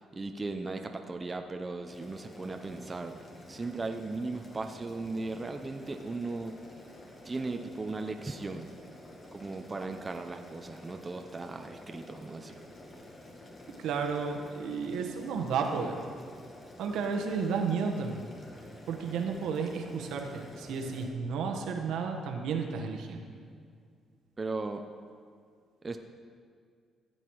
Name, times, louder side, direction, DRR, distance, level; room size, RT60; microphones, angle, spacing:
voice 1, 0.0-3.1 3.5-6.5 7.2-8.7 9.3-12.6 24.4-24.8 25.8-26.0, right 3 dB, 25° right, 5 dB, 0.7 m, -37 dB
Boiling, 1.9-21.1, left 1 dB, 40° left, 2.1 m, -50 dB
voice 2, 13.8-16.0 16.8-18.2 18.9-23.3, right 5 dB, 85° right, 3 dB, 1.3 m, -32 dB
15.0 x 8.1 x 4.7 m, 2.2 s
cardioid pair, 90°, 0 cm